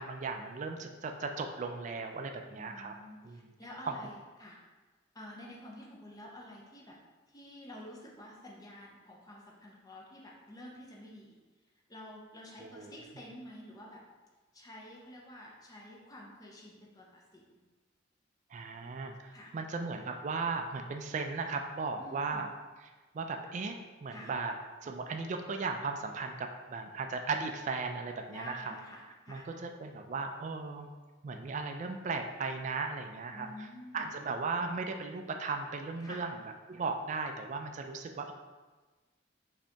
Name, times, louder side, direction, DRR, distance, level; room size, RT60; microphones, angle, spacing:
voice 1, 0.0-2.9 3.2-3.5 3.9-4.0 12.6-12.9 18.5-22.5 23.1-24.5 24.8-28.7 29.3-30.9 31.2-33.7 33.9-36.3 36.7-38.3, right 4 dB, 40° right, 5 dB, 0.3 m, -36 dB
voice 2, 2.6-4.6 5.1-7.0 7.3-11.4 11.9-14.0 14.5-17.6 19.3-19.5 22.0-22.5 24.1-24.3 28.3-29.5 33.3-34.1 36.0-36.3, left 1 dB, 20° left, -2 dB, 0.5 m, -49 dB
5.0 x 2.8 x 3.4 m, 1.3 s
head